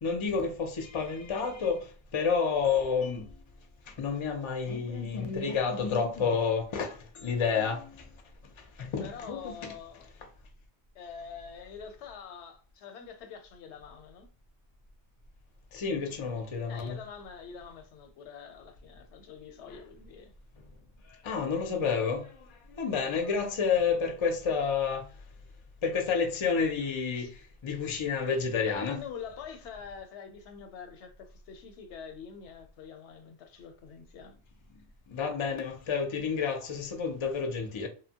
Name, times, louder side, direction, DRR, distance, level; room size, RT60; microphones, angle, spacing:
voice 1, 0.0-3.4 3.9-8.1 8.6-9.7 15.7-17.0 21.1-25.1 25.8-29.0 35.1-37.9, left 5 dB, 45° left, 0.4 m, -30 dB
voice 2, 9.0-10.1 10.9-14.3 16.7-20.3 23.0-23.2 27.2-27.3 28.7-34.3, left 7 dB, 85° left, 0.9 m, -45 dB
2.8 x 2.1 x 2.7 m
omnidirectional pair, 1.1 m